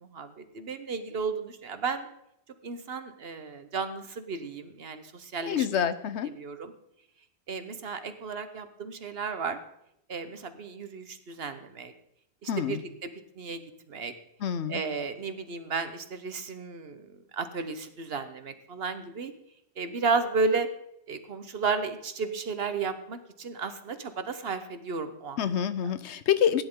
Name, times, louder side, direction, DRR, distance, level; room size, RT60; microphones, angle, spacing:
voice 1, 0.0-2.1 2.6-5.8 6.4-6.7 7.5-9.6 10.1-11.9 12.4-13.1 13.4-13.6 13.9-14.1 14.7-19.3 19.8-20.7 21.1-25.4 25.8-25.9, right 4 dB, 65° right, 10 dB, 1.2 m, -33 dB
voice 2, 5.4-6.3 12.5-12.8 14.4-14.8 25.4-26.6, left 9 dB, 80° left, 12 dB, 1.1 m, -27 dB
16.5 x 10.0 x 3.8 m, 0.78 s
omnidirectional pair, 1.1 m